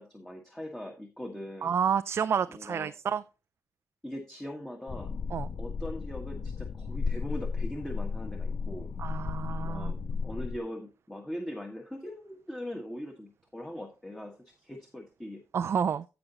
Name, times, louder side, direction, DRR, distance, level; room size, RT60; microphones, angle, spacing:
voice 1, 0.0-1.8 2.5-2.9 4.0-5.1 5.6-8.9 9.6-10.0 10.2-15.4, left 1 dB, 10° left, 1.5 m, -41 dB
voice 2, 1.6-3.2 5.3-5.5 9.0-9.9 15.5-16.0, right 7 dB, 50° right, 0.3 m, -29 dB
sound 1, 4.9-10.6, left 5 dB, 45° left, 0.5 m, -34 dB
15.0 x 5.1 x 2.9 m
cardioid pair, 105°, 5 cm